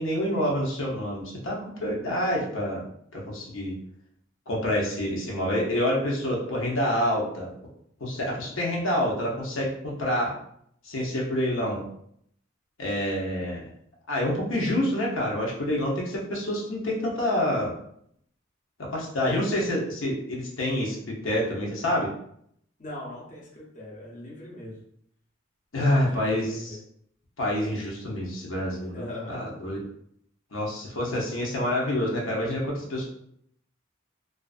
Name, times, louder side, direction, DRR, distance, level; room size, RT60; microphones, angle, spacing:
voice 1, 0.0-2.8 3.1-3.7 4.5-7.5 8.0-10.3 10.8-11.8 12.8-13.6 14.1-17.7 18.9-22.1 25.7-26.8 27.4-29.8 30.5-33.1, left 1 dB, 85° left, -3 dB, 0.7 m, -27 dB
voice 2, 22.8-24.8 26.0-26.8 28.9-29.4, left 1 dB, 40° left, -4 dB, 0.7 m, -40 dB
2.5 x 2.4 x 2.4 m, 0.69 s
head